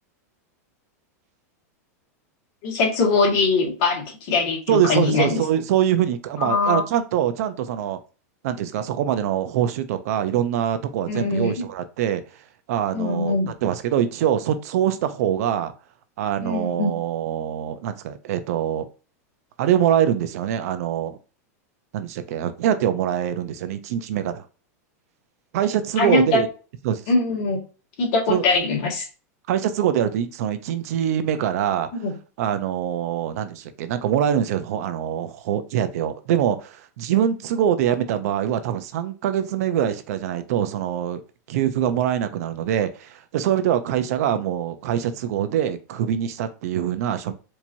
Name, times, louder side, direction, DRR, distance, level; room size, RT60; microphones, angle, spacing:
voice 1, 2.6-5.4 6.4-6.8 11.1-11.5 12.9-13.5 16.4-16.9 26.0-26.4 27.1-27.6 28.0-29.1 32.0-32.1, left 3 dB, 50° left, -1 dB, 1.9 m, -22 dB
voice 2, 4.7-8.0 8.4-15.7 16.2-18.9 19.6-21.2 21.9-24.4 25.5-26.5 26.8-27.0 28.3-28.4 29.5-32.0 32.4-41.2 41.5-47.3, right 10 dB, 65° right, 10 dB, 0.6 m, -24 dB
4.5 x 2.9 x 2.7 m, 0.34 s
supercardioid pair, 140°, 9 cm